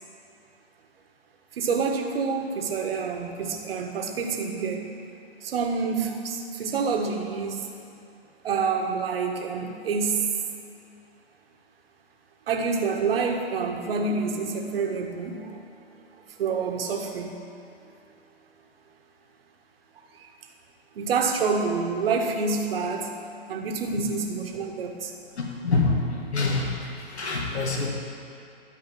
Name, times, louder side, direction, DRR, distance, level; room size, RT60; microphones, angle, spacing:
voice 1, 1.5-4.9 5.4-7.7 8.4-10.3 12.5-15.6 16.4-17.3 20.2-20.3 20.9-23.1 23.5-25.1, right 5 dB, 60° right, 3 dB, 1.5 m, -27 dB
voice 2, 25.4-28.0, left 3 dB, 75° left, -1 dB, 2.0 m, -26 dB
12.5 x 4.7 x 7.6 m, 2.7 s
hypercardioid pair, 125°, 33 cm